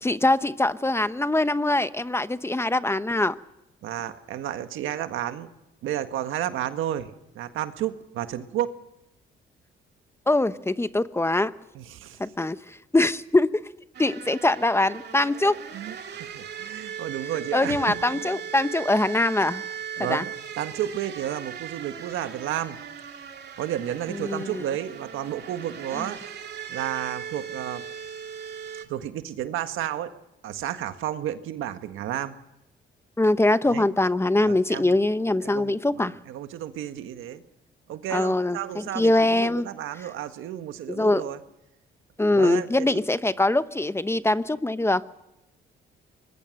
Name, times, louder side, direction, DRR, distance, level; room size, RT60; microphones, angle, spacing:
voice 1, 0.0-3.3 10.3-11.5 12.2-13.6 14.0-15.6 17.5-19.6 20.0-20.2 24.1-24.6 25.9-26.1 33.2-36.1 38.1-39.7 40.9-41.2 42.2-45.0, left 2 dB, 10° left, 13 dB, 0.9 m, -23 dB
voice 2, 3.8-5.5 5.8-7.1 7.4-8.7 11.8-12.2 15.7-18.2 20.0-20.3 20.6-22.8 23.6-26.2 26.7-27.8 28.9-30.1 30.4-32.3 33.7-33.9 34.4-35.0 35.4-37.4 37.9-41.4 42.3-43.0, right 11 dB, 85° right, 9 dB, 1.6 m, -32 dB
sound 1, 13.9-28.9, right 8 dB, 55° right, 2.3 m, -38 dB
24.5 x 21.5 x 6.6 m, 0.90 s
cardioid pair, 90°, 20 cm